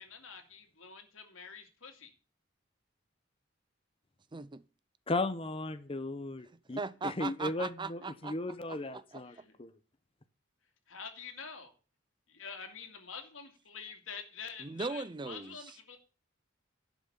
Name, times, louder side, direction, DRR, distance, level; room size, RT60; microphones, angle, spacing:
voice 1, 0.0-2.1 8.7-8.9 9.3-9.6 10.9-11.7 12.3-16.0, left 6 dB, 90° left, 2.6 m, -47 dB
voice 2, 4.3-4.6 6.8-8.3 8.7-9.4 14.6-15.8, right 4 dB, 25° right, 0.5 m, -39 dB
voice 3, 5.1-9.7, left 2 dB, 30° left, 0.9 m, -36 dB
11.5 x 6.2 x 7.1 m
head